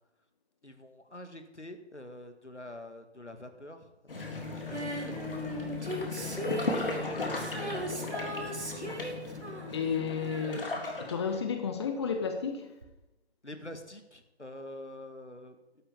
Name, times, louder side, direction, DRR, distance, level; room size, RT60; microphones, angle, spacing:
voice 1, 0.6-5.2 6.2-8.9 13.4-15.8, left 1 dB, 90° left, 8 dB, 2.4 m, -47 dB
sound 1, 4.1-11.5, left 3 dB, 55° left, 3.5 m, -37 dB
Female singing, 4.7-11.7 12.8-12.9, right 1 dB, 75° right, 3.5 m, -39 dB
voice 2, 9.7-10.7 11.0-12.7, left 6 dB, 25° left, 6 dB, 1.3 m, -32 dB
12.5 x 8.5 x 9.0 m, 0.99 s
figure-of-eight pair, 150°, 34 cm